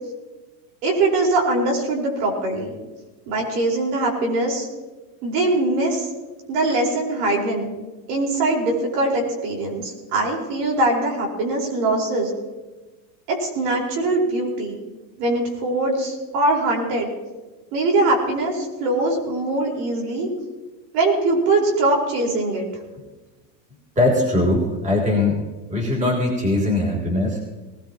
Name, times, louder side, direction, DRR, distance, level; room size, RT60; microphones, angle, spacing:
voice 1, 0.8-2.7 3.3-4.7 5.2-6.1 6.5-7.7 8.1-12.3 13.3-14.8 15.2-17.1 17.7-20.3 20.9-22.7, right 2 dB, 70° right, -1 dB, 4.9 m, -22 dB
voice 2, 24.0-25.4 25.7-27.4, left 2 dB, 15° right, -2 dB, 3.4 m, -20 dB
20.0 x 17.0 x 3.0 m, 1.2 s
supercardioid pair, 150°, 49 cm